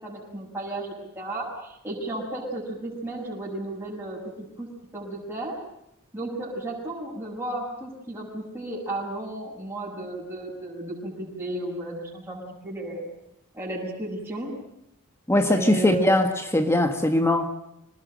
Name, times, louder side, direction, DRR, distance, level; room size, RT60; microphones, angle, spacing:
voice 1, 0.0-4.7 4.9-5.6 6.1-13.0 13.5-14.5 15.4-16.2, right 1 dB, 10° right, -8 dB, 7.3 m, -34 dB
voice 2, 15.3-17.5, left 1 dB, 10° left, 6 dB, 1.8 m, -21 dB
26.0 x 20.0 x 9.1 m, 0.81 s
head